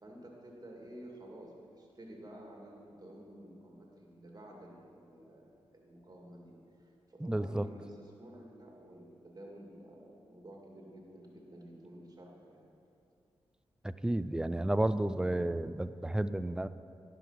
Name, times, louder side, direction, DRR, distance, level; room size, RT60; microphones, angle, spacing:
voice 1, 0.0-12.7, right 1 dB, 35° right, -1 dB, 2.3 m, -52 dB
voice 2, 7.2-7.7 13.8-16.7, right 1 dB, 5° right, 13 dB, 0.4 m, -32 dB
10.5 x 5.7 x 5.8 m, 2.7 s
supercardioid pair, 40°, 11 cm